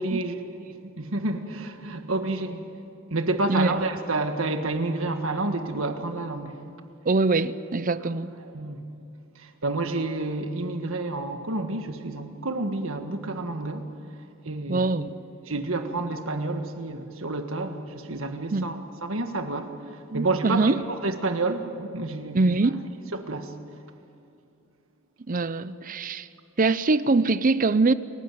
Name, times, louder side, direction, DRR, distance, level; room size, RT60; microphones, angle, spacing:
voice 1, 0.0-2.7 3.1-6.6 8.5-8.8 9.3-13.9 14.4-14.9 15.5-22.4 23.1-23.6, right 2 dB, 70° right, 7 dB, 1.7 m, -29 dB
voice 2, 3.5-3.8 7.0-8.3 14.7-15.2 18.5-18.7 20.1-20.8 22.3-22.9 25.3-26.3 26.6-27.9, right 3 dB, 40° right, 15 dB, 0.6 m, -23 dB
27.5 x 15.5 x 9.3 m, 2.6 s
head